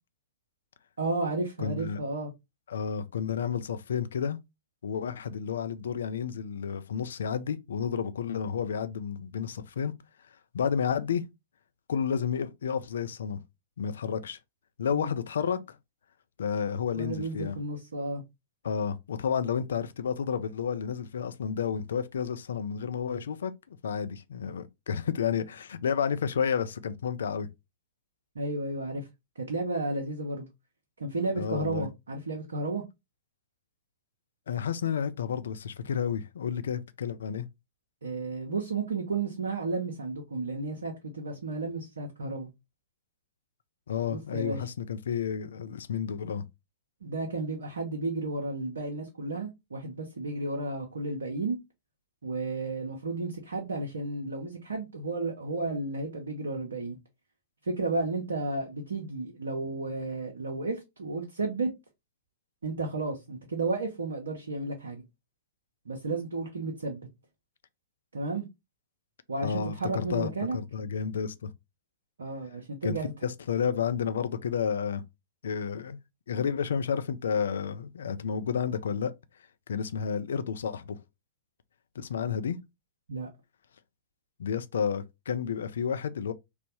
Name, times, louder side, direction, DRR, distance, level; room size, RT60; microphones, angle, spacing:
voice 1, 1.0-2.3 14.9-15.1 16.9-18.2 28.3-29.1 29.4-30.5 31.0-32.8 38.0-42.5 44.1-44.6 47.0-51.6 52.2-57.0 57.6-61.7 62.6-65.0 65.9-67.1 68.1-68.5 69.3-70.6 72.2-73.1 83.1-83.3, right 3 dB, 70° right, 0.6 m, -33 dB
voice 2, 1.6-2.0 2.7-4.4 4.8-9.9 10.5-11.2 11.9-13.4 13.8-14.4 14.8-15.8 16.4-17.6 18.6-27.5 31.4-31.9 34.5-37.5 43.9-46.4 69.4-71.5 72.8-72.9 73.2-75.0 75.4-76.0 76.3-79.1 79.7-81.0 82.0-82.6 84.4-86.3, left 7 dB, 60° left, 0.3 m, -31 dB
3.1 x 2.0 x 2.8 m
figure-of-eight pair, 105°, 0 cm